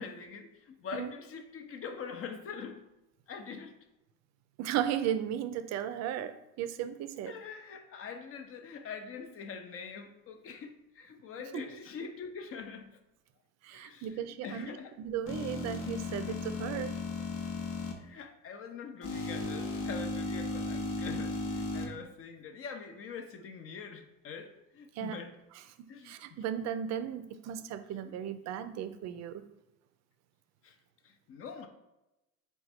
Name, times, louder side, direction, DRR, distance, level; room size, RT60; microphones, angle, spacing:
voice 1, 0.0-2.9 3.3-3.8 7.3-13.0 13.7-15.0 16.3-16.4 18.0-25.3 25.9-26.2 28.0-28.1 30.6-30.8 31.0-31.7, left 5 dB, 40° left, 7 dB, 0.5 m, -44 dB
voice 2, 4.6-7.3 11.5-11.7 13.6-14.7 15.0-17.0 24.9-25.2 26.0-29.5, right 10 dB, 45° right, 10 dB, 0.4 m, -35 dB
sound 1, 15.3-17.9 19.0-21.9, left 3 dB, 80° left, 0.9 m, -35 dB
3.8 x 2.3 x 4.2 m, 0.94 s
supercardioid pair, 95°, 37 cm